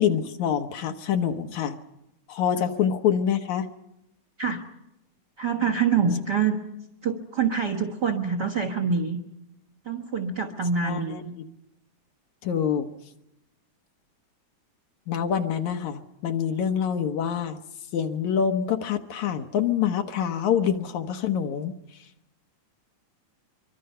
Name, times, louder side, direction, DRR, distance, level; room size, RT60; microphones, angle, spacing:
voice 1, 0.0-1.8 2.3-3.7 10.8-11.2 12.4-12.9 15.1-17.6 17.9-21.7, left 8 dB, 75° left, 5 dB, 2.3 m, -26 dB
voice 2, 5.4-6.6 7.0-9.2 9.9-11.3, right 6 dB, 40° right, 5 dB, 1.8 m, -25 dB
25.5 x 24.0 x 5.6 m, 0.88 s
omnidirectional pair, 3.5 m